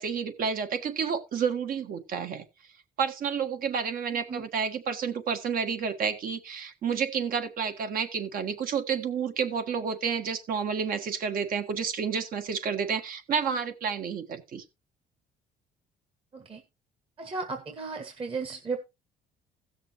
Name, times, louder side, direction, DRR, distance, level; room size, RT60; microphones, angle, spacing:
voice 1, 0.0-2.4 3.0-14.6, right 6 dB, 55° right, 1.5 m, -30 dB
voice 2, 17.2-18.8, right 4 dB, 35° right, 1.5 m, -35 dB
16.5 x 6.6 x 3.0 m
cardioid pair, 110°, 17 cm